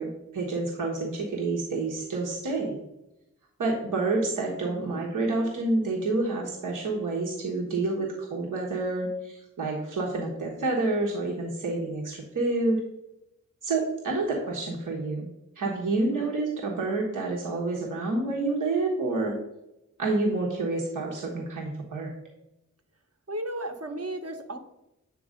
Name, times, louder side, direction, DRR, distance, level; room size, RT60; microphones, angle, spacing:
voice 1, 0.0-2.7 3.6-12.8 13.6-15.3 15.6-19.4 20.0-22.1, right 2 dB, 80° right, -2 dB, 1.3 m, -28 dB
voice 2, 4.6-5.0 16.0-16.4 23.3-24.6, right 1 dB, 50° right, 5 dB, 1.1 m, -35 dB
7.7 x 3.2 x 5.1 m, 0.89 s
cardioid pair, 45°, 31 cm